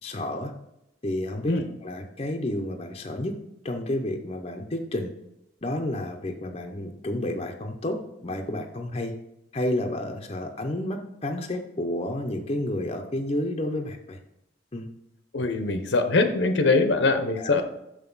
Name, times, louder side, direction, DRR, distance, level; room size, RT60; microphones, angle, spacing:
voice 1, 0.0-0.5 1.0-3.3 3.6-5.1 5.6-9.1 9.5-14.2 14.7-14.9 17.4-17.6, left 1 dB, 30° left, 4 dB, 0.6 m, -30 dB
voice 2, 15.3-17.6, left 3 dB, 65° left, 8 dB, 0.7 m, -22 dB
6.5 x 5.8 x 3.9 m, 0.84 s
head